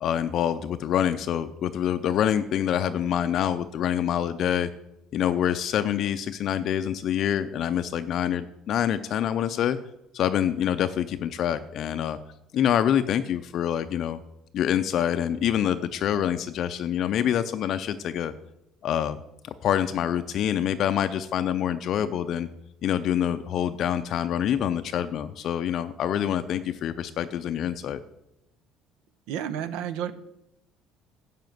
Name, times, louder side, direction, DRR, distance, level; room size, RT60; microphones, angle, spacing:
voice 1, 0.0-4.7 5.1-9.8 10.1-12.2 12.5-14.2 14.5-18.3 18.8-19.2 19.4-22.5 22.8-28.0, left 10 dB, 50° left, 10 dB, 0.4 m, -26 dB
voice 2, 29.3-30.1, right 9 dB, 85° right, 14 dB, 0.8 m, -31 dB
10.5 x 5.0 x 7.7 m, 0.85 s
cardioid pair, 150°, 0 cm